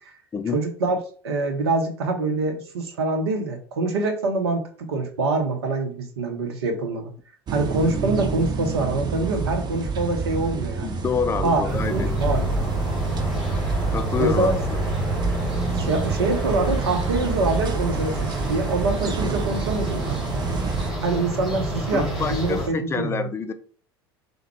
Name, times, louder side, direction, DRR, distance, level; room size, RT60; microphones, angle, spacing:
voice 1, 0.5-1.0 1.2-7.1 7.5-10.9 11.4-11.6 11.9-12.5 14.2-14.6 15.7-20.2 21.0-23.3, right 3 dB, 75° right, 0.7 m, -25 dB
sound 1, 7.5-20.9, right 5 dB, 35° right, 0.6 m, -28 dB
voice 2, 10.8-12.1 13.9-14.8 21.9-23.5, left 6 dB, 20° left, 0.4 m, -27 dB
sound 2, 11.7-22.7, right 1 dB, ahead, 1.5 m, -28 dB
3.4 x 2.1 x 3.3 m
figure-of-eight pair, 70°, 13 cm